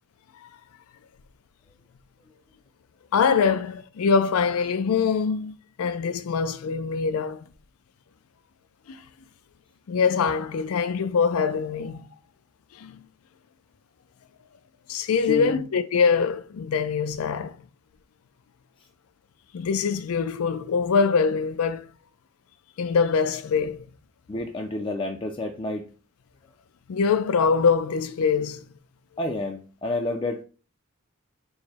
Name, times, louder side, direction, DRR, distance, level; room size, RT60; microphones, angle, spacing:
voice 1, 3.1-5.5 5.8-7.5 8.9-9.0 9.9-12.1 12.8-12.9 14.9-17.6 19.5-21.8 22.8-23.9 26.9-28.6, left 5 dB, 85° left, 0.4 m, -23 dB
voice 2, 15.3-15.7 24.3-25.8 29.2-30.4, left 2 dB, 25° left, 0.4 m, -29 dB
4.6 x 2.1 x 4.1 m
head